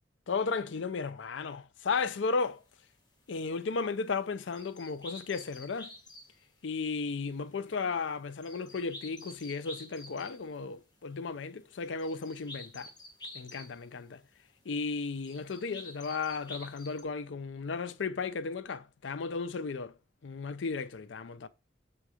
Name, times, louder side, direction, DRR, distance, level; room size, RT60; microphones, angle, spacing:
voice 1, 0.3-2.6 3.3-5.9 6.6-12.9 13.3-14.2 14.7-19.9 20.2-21.5, left 4 dB, 85° left, 0.5 m, -34 dB
sound 1, 2.2-2.3 2.7-2.8 3.2-6.5 6.8-14.1 14.6-14.8 15.2-17.0, left 2 dB, 25° left, 1.3 m, -49 dB
7.2 x 3.8 x 4.9 m
head